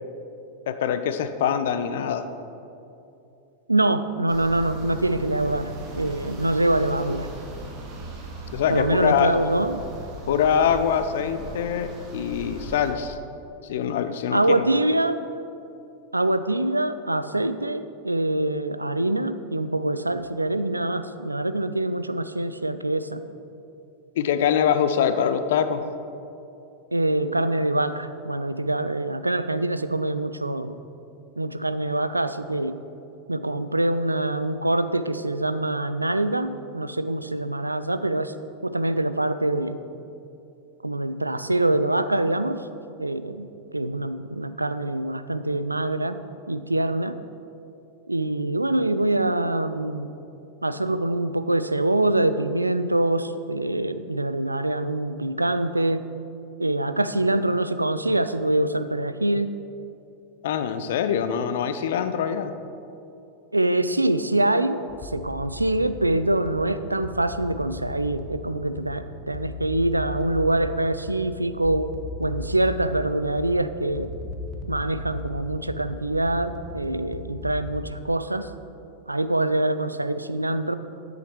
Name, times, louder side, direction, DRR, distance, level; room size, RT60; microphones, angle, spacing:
voice 1, 0.7-2.3 8.5-9.3 10.3-13.2 13.7-14.6 24.2-25.8 60.4-62.5, left 8 dB, 55° left, 10 dB, 0.6 m, -24 dB
voice 2, 3.7-7.3 8.7-9.8 14.3-15.2 16.1-23.2 26.9-30.8 31.4-32.8 33.3-38.3 38.6-39.8 40.8-42.6 43.0-43.5 43.7-46.2 46.5-47.2 48.1-50.1 50.6-56.1 56.6-59.5 61.1-61.2 63.5-71.9 72.2-74.1 74.7-78.5 79.1-80.7, right 1 dB, 85° right, 12 dB, 0.4 m, -24 dB
sound 1, 4.3-12.9, right 2 dB, 35° right, 1.7 m, -38 dB
sound 2, 64.9-77.8, left 3 dB, 30° left, 1.2 m, -37 dB
10.0 x 7.9 x 4.5 m, 2.7 s
figure-of-eight pair, 90°, 0 cm